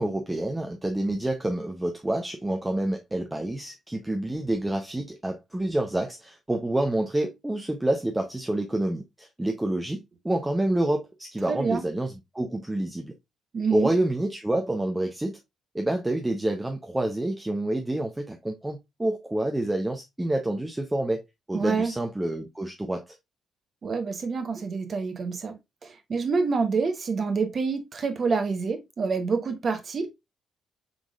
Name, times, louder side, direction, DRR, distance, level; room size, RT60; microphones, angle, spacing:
voice 1, 0.0-13.1 13.7-15.4 15.7-21.2 21.5-23.1, right 1 dB, 15° right, 0.6 m, -28 dB
voice 2, 11.5-11.8 13.5-13.9 21.5-21.9 23.8-25.5 25.8-30.1, right 4 dB, 45° right, 0.9 m, -27 dB
5.0 x 3.6 x 2.3 m
figure-of-eight pair, 40°, 0 cm